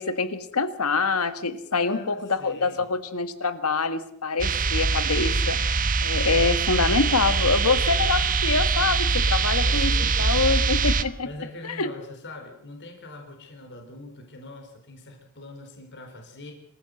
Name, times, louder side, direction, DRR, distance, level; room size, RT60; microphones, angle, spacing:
voice 1, 0.0-5.6 6.0-11.3 11.6-11.9, left 4 dB, 75° left, 12 dB, 1.7 m, -25 dB
voice 2, 1.7-2.9 9.6-10.6 11.0-16.5, left 2 dB, 55° left, 3 dB, 4.3 m, -43 dB
sound 1, 4.4-11.0, right 4 dB, 40° right, 1.1 m, -23 dB
25.5 x 14.5 x 7.8 m, 0.72 s
head